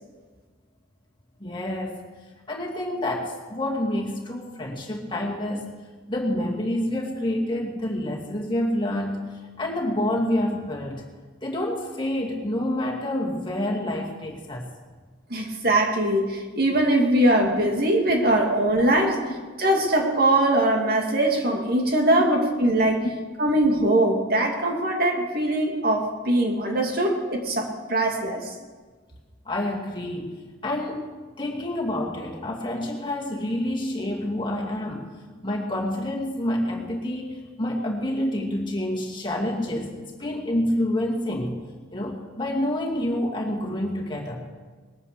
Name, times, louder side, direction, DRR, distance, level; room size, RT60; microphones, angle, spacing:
voice 1, 1.4-2.0 2.5-5.7 6.1-9.3 9.6-11.0 11.4-14.7 17.6-17.7 26.7-26.8 29.5-30.3 30.6-31.1 31.4-35.0 35.4-41.5 41.9-44.4, left 1 dB, 25° left, -1 dB, 2.2 m, -28 dB
voice 2, 15.3-19.2 19.6-23.0 23.4-28.5, right 1 dB, 50° right, 1 dB, 2.3 m, -22 dB
20.5 x 9.7 x 6.7 m, 1.4 s
head